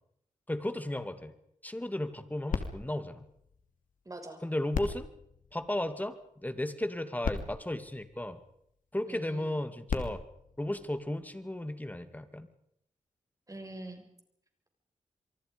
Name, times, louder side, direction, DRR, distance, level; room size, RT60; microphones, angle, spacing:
voice 1, 0.5-1.3 1.6-3.3 4.4-5.1 5.5-6.2 6.4-8.4 8.9-10.2 10.6-12.5, left 1 dB, 10° left, 10 dB, 2.5 m, -34 dB
sound 1, 2.5-4.1 4.7-6.3 6.9-7.0 7.2-8.8 9.6-11.5 12.2-12.3, left 5 dB, 80° left, 3.0 m, -39 dB
voice 2, 4.0-4.4 9.1-9.6 13.5-14.0, right 2 dB, 25° right, 5 dB, 6.2 m, -44 dB
27.0 x 23.5 x 5.3 m, 0.73 s
cardioid pair, 75°, 13 cm